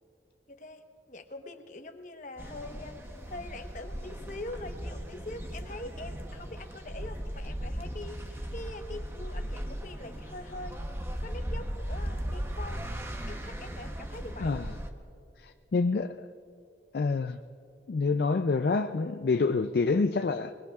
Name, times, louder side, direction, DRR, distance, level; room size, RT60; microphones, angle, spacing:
voice 1, 0.5-10.8 11.2-12.9 13.3-14.6, left 2 dB, 45° left, 6 dB, 1.0 m, -43 dB
sound 1, 2.4-14.9, equal, 15° right, 0.8 m, -37 dB
voice 2, 15.4-16.3 16.9-17.4 17.9-20.5, left 4 dB, 60° left, 8 dB, 0.4 m, -27 dB
25.5 x 21.0 x 2.4 m, 2.7 s
head